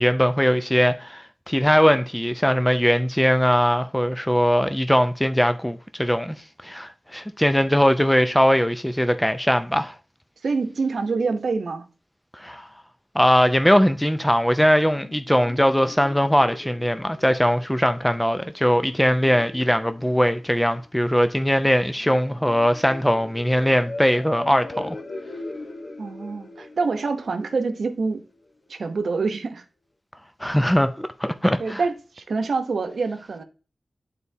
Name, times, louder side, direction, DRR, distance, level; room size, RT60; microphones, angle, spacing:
voice 1, 0.0-6.4 6.6-10.0 12.3-12.7 13.1-25.0 30.4-31.8, equal, 5° left, 0.4 m, -20 dB
voice 2, 10.4-11.9 26.0-28.2 28.7-29.6 31.6-33.4, right 4 dB, 90° right, 0.8 m, -26 dB
sound 1, 14.9-28.5, left 2 dB, 85° left, 1.0 m, -41 dB
11.0 x 4.1 x 2.7 m
wide cardioid pair, 95°, 0 cm